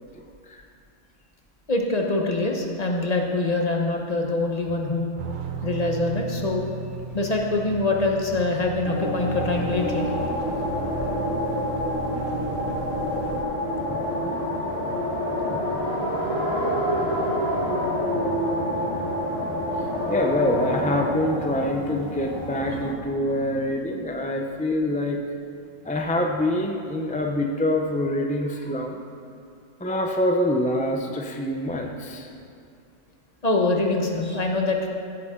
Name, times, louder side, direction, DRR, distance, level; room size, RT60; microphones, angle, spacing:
voice 1, 1.7-5.1 5.6-6.7 7.1-10.1 33.4-34.9, left 2 dB, 30° left, 1 dB, 1.1 m, -24 dB
sound 1, 5.2-13.4, right 7 dB, 55° right, 0.6 m, -35 dB
sound 2, 8.8-22.9, left 1 dB, 85° left, 2.4 m, -27 dB
voice 2, 13.9-14.3 15.5-15.8 20.1-25.2 25.8-29.0 29.8-32.3, left 1 dB, 10° left, 2 dB, 0.4 m, -25 dB
15.5 x 8.2 x 3.8 m, 2.4 s
omnidirectional pair, 1.3 m